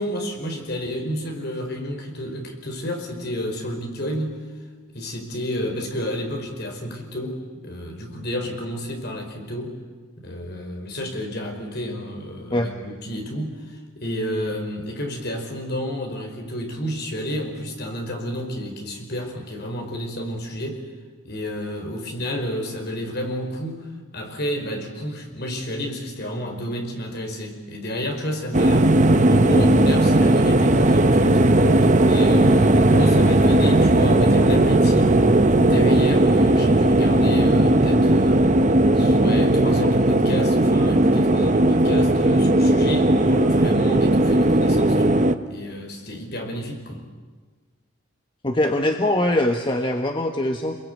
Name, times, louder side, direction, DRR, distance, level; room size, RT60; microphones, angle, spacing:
voice 1, 0.0-4.4 4.9-9.8 10.2-20.8 21.2-23.9 24.1-28.9 29.3-35.2 35.5-38.5 38.9-45.2 45.5-47.0, equal, 50° left, 3 dB, 5.2 m, -30 dB
sound 1, 28.5-45.3, right 1 dB, 35° right, 1.1 m, -17 dB
voice 2, 48.4-50.7, left 1 dB, 25° left, 4 dB, 1.4 m, -22 dB
28.5 x 22.5 x 9.5 m, 1.4 s
head